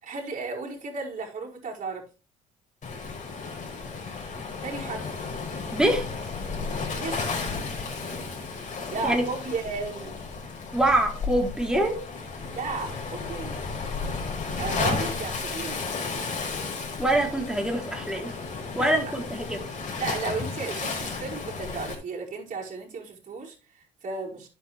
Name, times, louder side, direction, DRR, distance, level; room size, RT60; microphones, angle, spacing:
voice 1, 0.0-2.1 4.6-5.1 7.0-7.4 8.9-10.2 12.5-13.7 14.6-15.8 18.8-18.9 20.0-24.5, right 4 dB, 40° right, 5.1 m, -34 dB
Waves surf, 2.8-21.9, left 4 dB, 40° left, 5.0 m, -33 dB
voice 2, 5.7-6.1 9.0-9.2 10.7-12.0 17.0-18.3 18.7-19.6, right 1 dB, 5° right, 3.8 m, -24 dB
10.5 x 8.6 x 3.4 m
hypercardioid pair, 55°, 19 cm